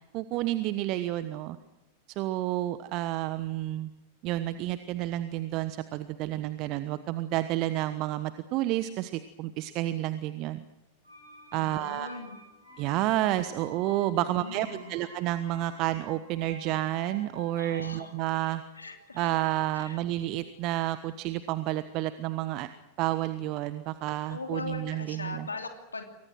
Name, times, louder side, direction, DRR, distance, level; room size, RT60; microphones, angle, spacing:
voice 1, 0.1-1.6 2.2-3.9 4.2-10.6 11.5-12.1 12.8-18.6 19.2-22.7 23.0-25.5, right 15 dB, 40° right, 12 dB, 1.2 m, -30 dB
sound 1, 11.0-20.8 21.1-21.2, left 1 dB, 85° right, 7.7 m, -50 dB
voice 2, 11.5-12.4 14.1-14.9 17.5-18.4 18.7-19.3 19.7-20.0 24.3-26.0, left 3 dB, 80° left, 4 dB, 3.0 m, -40 dB
28.0 x 24.5 x 6.2 m, 0.96 s
figure-of-eight pair, 90°, 0 cm